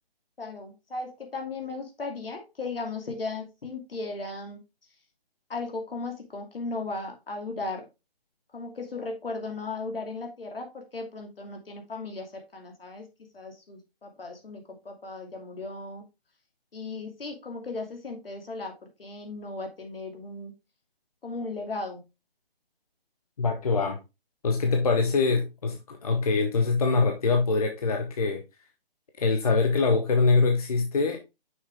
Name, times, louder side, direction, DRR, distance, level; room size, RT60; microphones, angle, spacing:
voice 1, 0.4-4.6 5.5-7.9 8.5-13.1 13.3-16.0 16.7-18.7 19.0-20.5 21.2-22.0, left 3 dB, 65° left, 2.6 m, -36 dB
voice 2, 23.4-24.0 24.4-28.4 29.2-31.2, left 4 dB, 40° left, 0.9 m, -24 dB
6.4 x 6.2 x 3.4 m
figure-of-eight pair, 160°, 30 cm